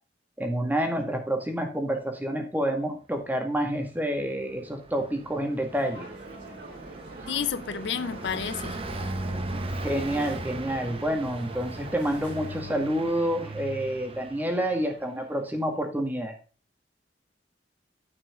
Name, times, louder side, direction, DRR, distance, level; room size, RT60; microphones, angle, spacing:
voice 1, 0.4-6.1 9.8-16.3, right 1 dB, 10° right, 1.8 m, -28 dB
Car passing by, 4.2-15.2, right 2 dB, 30° right, 0.9 m, -38 dB
sound 1, 5.7-12.8, right 3 dB, 85° right, 4.3 m, -45 dB
voice 2, 7.3-8.8, left 7 dB, 70° left, 0.5 m, -30 dB
9.6 x 6.1 x 3.6 m
head